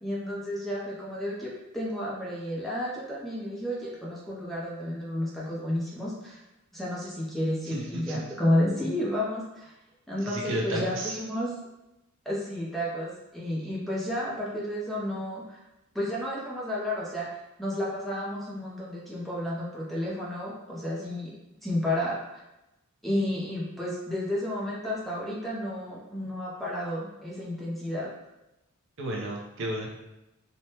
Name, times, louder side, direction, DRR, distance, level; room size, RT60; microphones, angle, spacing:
voice 1, 0.0-6.4 6.7-9.7 10.1-11.5 12.3-15.6 15.9-17.3 17.6-21.3 21.6-22.4 23.0-28.1, left 1 dB, ahead, -6 dB, 0.5 m, -31 dB
voice 2, 7.7-8.2 10.2-11.2 29.0-29.9, right 1 dB, 60° right, -2 dB, 0.6 m, -32 dB
3.2 x 2.1 x 2.8 m, 0.94 s
head